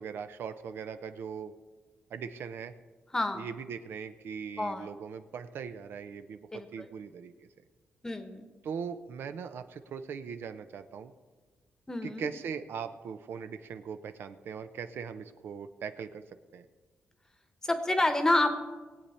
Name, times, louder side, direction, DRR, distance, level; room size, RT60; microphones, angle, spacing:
voice 1, 0.0-1.5 2.1-2.7 3.3-7.3 8.6-11.1 12.0-16.2 16.5-16.7, right 6 dB, 70° right, 10 dB, 0.6 m, -40 dB
voice 2, 3.1-3.5 4.6-4.9 6.5-6.9 8.0-8.5 11.9-12.3 17.6-18.6, left 2 dB, 15° left, 8 dB, 1.0 m, -28 dB
20.0 x 8.5 x 4.3 m, 1.3 s
wide cardioid pair, 140°, 4 cm